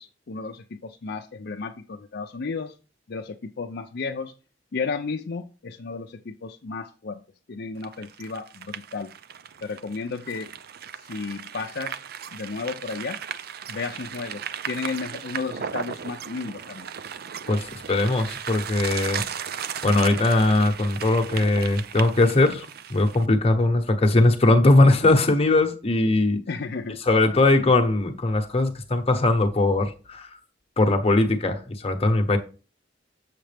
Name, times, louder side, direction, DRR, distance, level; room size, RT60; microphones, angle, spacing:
voice 1, 0.0-2.8 3.1-4.3 4.7-7.2 7.5-9.1 9.6-10.6 11.0-12.0 12.3-13.2 13.7-16.9 24.1-24.2 26.5-27.0, left 4 dB, 60° left, 0.5 m, -33 dB
sound 1, 7.8-23.3, right 8 dB, 60° right, 0.5 m, -36 dB
voice 2, 17.5-19.3 19.8-26.4 27.1-30.4 30.8-32.4, left 2 dB, 35° left, 1.0 m, -20 dB
7.5 x 6.6 x 3.4 m
head